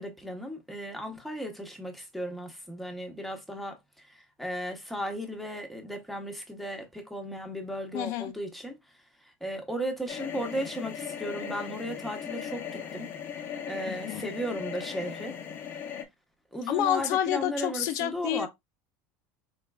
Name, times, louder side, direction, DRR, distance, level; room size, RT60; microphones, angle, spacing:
voice 1, 0.0-3.8 4.0-8.7 9.4-13.1 13.7-15.3 16.5-18.5, equal, ahead, 0.9 m, -35 dB
voice 2, 7.9-8.3 13.9-14.3 16.7-18.5, left 12 dB, 55° left, 0.3 m, -29 dB
sound 1, 10.1-16.0, left 8 dB, 35° left, 0.7 m, -38 dB
4.3 x 3.2 x 2.3 m
supercardioid pair, 145°, 6 cm